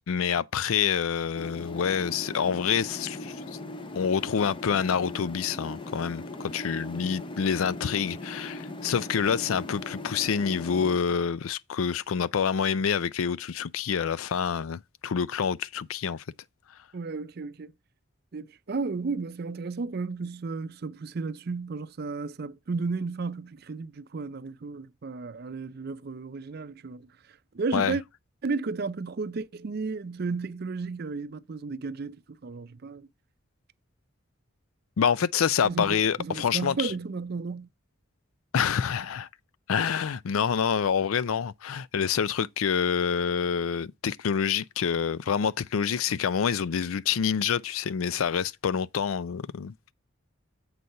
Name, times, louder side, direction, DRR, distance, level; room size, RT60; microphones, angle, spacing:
voice 1, 0.1-3.4 3.9-16.2 27.7-28.0 35.0-36.9 38.5-39.3 39.7-49.7, left 7 dB, 85° left, 0.4 m, -27 dB
sound 1, 1.4-11.0, left 2 dB, 25° left, 0.5 m, -39 dB
voice 2, 16.9-17.7 18.3-28.0 28.4-33.1 35.6-37.7, right 4 dB, 50° right, 0.5 m, -33 dB
7.9 x 4.0 x 5.5 m
head